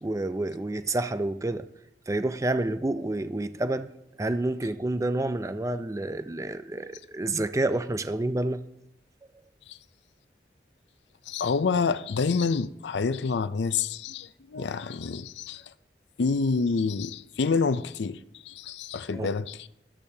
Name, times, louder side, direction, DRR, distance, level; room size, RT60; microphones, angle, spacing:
voice 1, 0.0-1.7 2.1-3.9 4.2-8.6 19.1-19.3, right 2 dB, 15° right, 0.4 m, -29 dB
voice 2, 11.3-15.6 16.2-19.7, left 4 dB, 75° left, 0.5 m, -28 dB
16.5 x 12.5 x 2.8 m
head